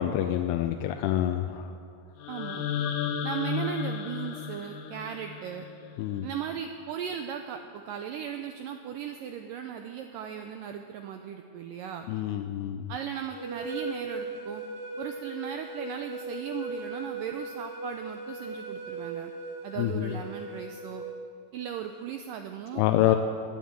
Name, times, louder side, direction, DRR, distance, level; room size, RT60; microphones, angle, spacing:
voice 1, 0.0-1.7 6.0-6.3 12.1-12.9 19.8-20.1 22.8-23.2, left 13 dB, 85° left, 6 dB, 2.7 m, -27 dB
sound 1, 2.2-6.2, left 7 dB, 70° left, 2.4 m, -34 dB
voice 2, 2.3-2.7 3.2-5.6 6.2-12.1 12.9-14.6 15.0-19.3 19.6-21.0 21.5-23.2, right 9 dB, 85° right, 5 dB, 1.9 m, -37 dB
sound 2, 13.3-21.1, right 2 dB, 35° right, 3.7 m, -38 dB
18.5 x 10.0 x 7.3 m, 2.5 s
omnidirectional pair, 4.6 m